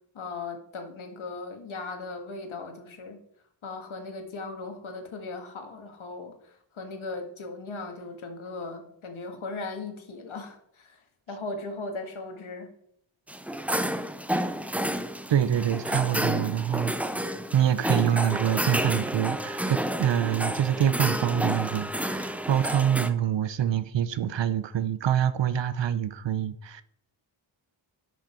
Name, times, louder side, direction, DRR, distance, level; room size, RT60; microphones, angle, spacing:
voice 1, 0.1-3.2 3.6-11.0 11.3-12.7, left 3 dB, 80° left, 1.8 m, -38 dB
sound 1, 13.3-23.1, right 1 dB, 5° right, 0.4 m, -30 dB
voice 2, 15.3-16.9 17.5-26.8, right 10 dB, 65° right, 0.7 m, -25 dB
10.0 x 6.4 x 4.4 m
wide cardioid pair, 165°, 47 cm